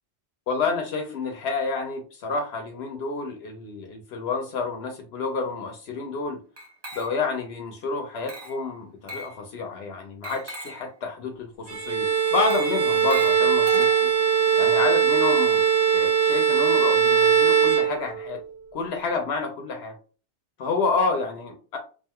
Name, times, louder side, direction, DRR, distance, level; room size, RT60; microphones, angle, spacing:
voice 1, 0.5-6.4 6.9-14.1 14.6-18.4 18.7-19.9 20.6-21.8, left 4 dB, 70° left, 4 dB, 0.8 m, -29 dB
Glass, 6.6-7.4 8.3-8.7 9.1-9.4 10.2-10.9 12.3-14.3, right 3 dB, 30° right, 0.5 m, -38 dB
Bowed string instrument, 11.7-18.5, right 7 dB, 70° right, 1.0 m, -21 dB
2.5 x 2.3 x 2.8 m, 0.37 s
omnidirectional pair, 1.1 m